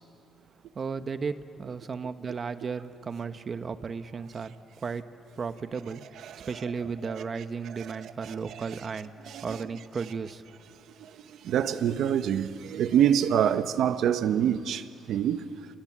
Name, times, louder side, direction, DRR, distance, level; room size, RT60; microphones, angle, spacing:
voice 1, 0.7-4.5 4.8-5.0 5.4-6.0 6.5-9.1 9.4-10.4, right 5 dB, 40° right, 1.2 m, -34 dB
voice 2, 8.3-8.6 9.3-9.4 11.0-15.5, right 9 dB, 75° right, 1.1 m, -26 dB
29.0 x 27.5 x 7.5 m
cardioid pair, 90°, 0 cm